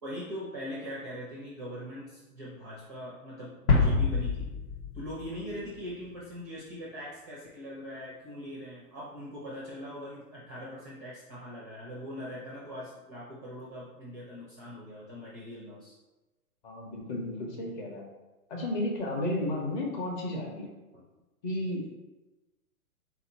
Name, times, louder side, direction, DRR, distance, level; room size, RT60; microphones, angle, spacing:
voice 1, 0.0-4.5 4.9-16.0, equal, 15° right, -6 dB, 0.4 m, -41 dB
sound 1, 3.7-6.2, left 4 dB, 75° left, 1.1 m, -27 dB
voice 2, 16.6-18.1 18.5-20.7 21.4-21.9, left 1 dB, 30° left, -1 dB, 0.9 m, -33 dB
4.2 x 2.8 x 4.1 m, 1.1 s
hypercardioid pair, 145°, 45 cm